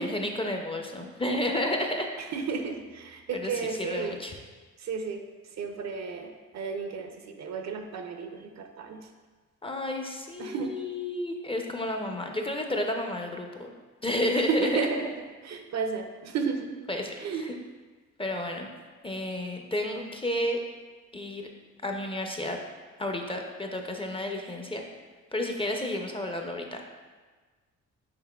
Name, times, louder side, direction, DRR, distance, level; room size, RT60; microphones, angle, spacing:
voice 1, 0.0-2.1 3.3-4.3 9.6-13.7 14.0-14.8 16.9-17.6 18.2-18.7 19.0-20.6 21.1-21.5 21.8-22.6 23.0-24.8 25.3-26.8, left 1 dB, 15° left, 3 dB, 0.5 m, -31 dB
voice 2, 2.2-4.2 4.8-9.1 10.4-10.8 14.4-15.2 15.4-16.7 17.2-17.5, right 5 dB, 55° right, 6 dB, 0.5 m, -33 dB
5.8 x 4.1 x 2.2 m, 1.4 s
cardioid pair, 70°, 33 cm